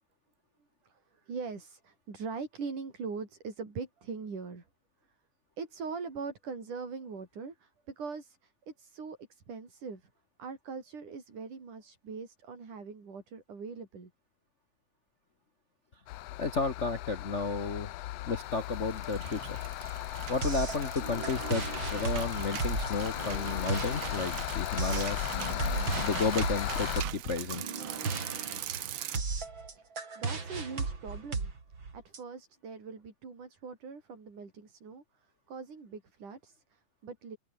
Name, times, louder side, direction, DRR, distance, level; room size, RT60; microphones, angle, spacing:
voice 1, 0.8-4.7 5.6-10.1 10.4-14.1 29.8-31.5 31.9-37.4, right 5 dB, 80° right, 6.8 m, -42 dB
sound 1, 16.1-27.0, left 17 dB, 80° left, 1.5 m, -36 dB
voice 2, 16.4-17.9 18.2-19.6 20.3-25.3 26.0-27.6, left 4 dB, 50° left, 0.8 m, -32 dB
sound 2, 18.7-29.2, right 12 dB, 60° right, 2.0 m, -41 dB
sound 3, 20.4-32.2, right 4 dB, 35° right, 4.3 m, -36 dB
omnidirectional pair, 3.6 m